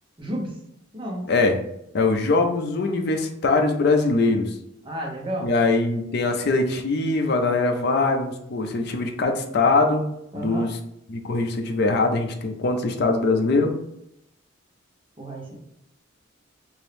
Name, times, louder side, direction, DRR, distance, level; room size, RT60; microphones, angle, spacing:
voice 1, 0.2-0.5 0.9-1.3 4.8-5.5 10.3-10.7 15.2-15.5, right 1 dB, 25° right, -2 dB, 0.8 m, -31 dB
voice 2, 1.9-4.5 5.4-10.0 10.3-10.8 11.1-13.7, left 3 dB, 55° left, 4 dB, 0.5 m, -22 dB
3.0 x 2.6 x 3.3 m, 0.78 s
head